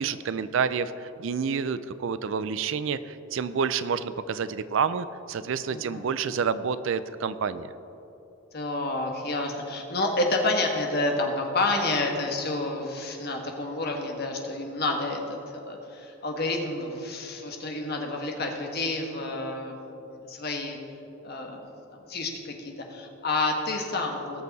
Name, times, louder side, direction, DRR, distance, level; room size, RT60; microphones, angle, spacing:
voice 1, 0.0-7.7, right 6 dB, 60° right, 14 dB, 0.4 m, -29 dB
voice 2, 5.7-6.1 8.5-19.7 20.3-20.8 21.2-21.6 21.9-24.4, left 2 dB, 45° left, 2 dB, 1.4 m, -29 dB
19.0 x 6.5 x 4.1 m, 3.0 s
head